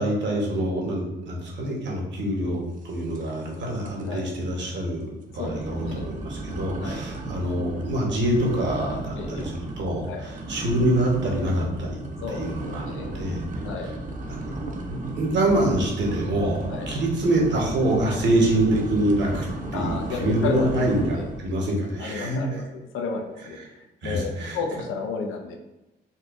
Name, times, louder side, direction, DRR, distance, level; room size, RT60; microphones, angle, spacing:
voice 1, 0.0-12.0 12.3-12.9 13.1-13.4 14.3-14.4 14.9-19.5 19.7-22.4 24.0-24.6, right 1 dB, 65° right, -1 dB, 1.1 m, -25 dB
sound 1, 3.1-3.5 3.8-4.2 4.6-4.7 5.3-21.5, right 2 dB, 40° right, 0.6 m, -34 dB
voice 2, 5.4-6.1 6.8-7.1 9.2-9.5 10.1-10.3 12.2-13.2 13.6-13.9 16.7-16.9 19.7-21.3 22.0-25.6, left 4 dB, 85° left, 3 dB, 0.6 m, -32 dB
4.2 x 2.5 x 2.5 m, 1.0 s
cardioid pair, 90°, 20 cm